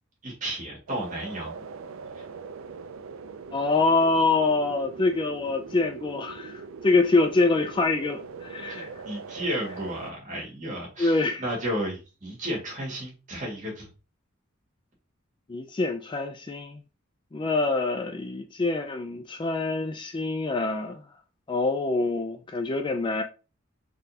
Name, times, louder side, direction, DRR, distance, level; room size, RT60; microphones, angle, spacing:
voice 1, 0.2-1.5 2.2-2.3 8.7-13.9, equal, 40° right, 1.9 m, -33 dB
sound 1, 0.9-10.1, right 5 dB, 80° right, 0.4 m, -41 dB
voice 2, 3.5-8.9 11.0-11.4 15.5-16.8 17.3-21.0 21.5-23.2, left 3 dB, 25° left, 0.3 m, -25 dB
3.8 x 3.7 x 2.8 m
head